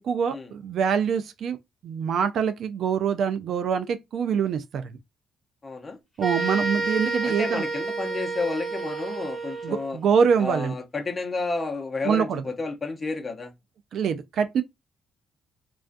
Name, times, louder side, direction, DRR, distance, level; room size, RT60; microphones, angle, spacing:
voice 1, 0.0-1.6 1.8-5.0 6.2-7.6 9.6-10.7 12.0-12.4 13.9-14.6, right 7 dB, 65° right, 0.3 m, -24 dB
voice 2, 5.6-6.0 7.2-10.0 10.4-13.5, left 3 dB, 30° left, 0.6 m, -31 dB
sound 1, 6.2-9.9, right 3 dB, 5° left, 1.2 m, -30 dB
2.3 x 2.2 x 2.5 m
cardioid pair, 90°, 0 cm